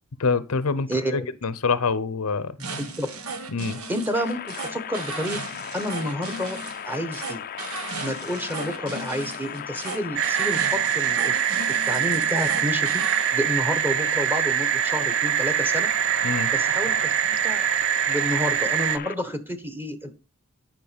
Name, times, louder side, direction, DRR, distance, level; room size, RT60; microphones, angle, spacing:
voice 1, 0.2-2.6 3.5-3.8 16.2-16.5, left 4 dB, 75° left, 0.7 m, -25 dB
voice 2, 0.9-1.3 2.6-3.1 3.9-5.4 5.7-6.6 6.8-7.4 8.0-11.6 11.9-13.0 13.3-15.9 16.5-17.0 17.2-17.6 18.1-20.1, equal, 10° right, 1.2 m, -30 dB
sound 1, 2.6-13.4, right 3 dB, 75° right, 1.4 m, -36 dB
sound 2, 4.1-19.1, left 9 dB, 40° left, 0.5 m, -37 dB
sound 3, 10.2-19.0, right 10 dB, 60° right, 0.5 m, -24 dB
9.5 x 5.8 x 5.1 m
head